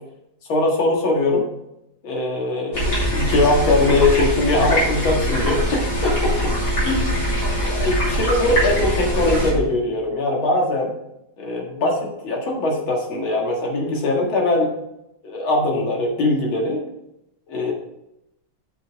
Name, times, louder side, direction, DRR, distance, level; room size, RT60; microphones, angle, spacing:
voice 1, 0.5-1.5 2.0-6.5 6.8-7.1 7.6-10.9 11.4-14.7 15.2-16.8 17.5-17.7, left 2 dB, 75° left, 0 dB, 2.6 m, -21 dB
sound 1, 2.7-9.5, equal, 50° left, 4.1 m, -22 dB
7.9 x 5.8 x 4.7 m, 0.84 s
omnidirectional pair, 2.2 m